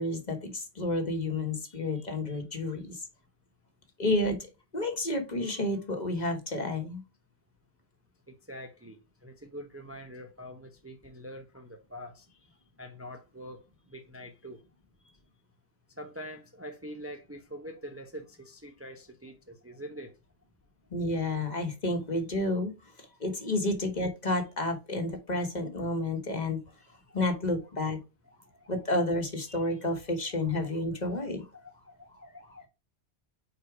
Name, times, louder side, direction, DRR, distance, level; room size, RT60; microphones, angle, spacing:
voice 1, 0.0-3.0 4.0-7.0 20.9-22.7 23.0-26.6 27.1-28.0 28.7-31.4, left 2 dB, 45° left, 1.4 m, -30 dB
voice 2, 1.7-2.4 8.3-12.4 12.8-14.6 16.0-20.1 26.8-27.4 28.2-28.7 29.5-29.6 30.5-30.8 31.2-32.7, equal, 15° right, 0.7 m, -45 dB
4.7 x 4.3 x 4.8 m
omnidirectional pair, 1.1 m